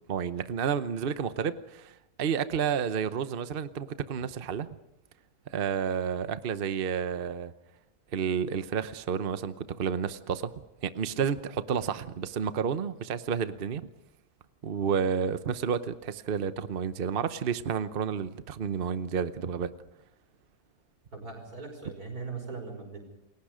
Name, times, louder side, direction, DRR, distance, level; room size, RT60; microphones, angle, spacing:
voice 1, 0.1-4.7 5.5-7.5 8.1-10.5 10.8-13.9 14.6-19.7, right 7 dB, 45° right, 0.9 m, -30 dB
voice 2, 21.1-23.0, right 4 dB, 70° right, 6.0 m, -40 dB
29.0 x 22.0 x 5.0 m
omnidirectional pair, 1.6 m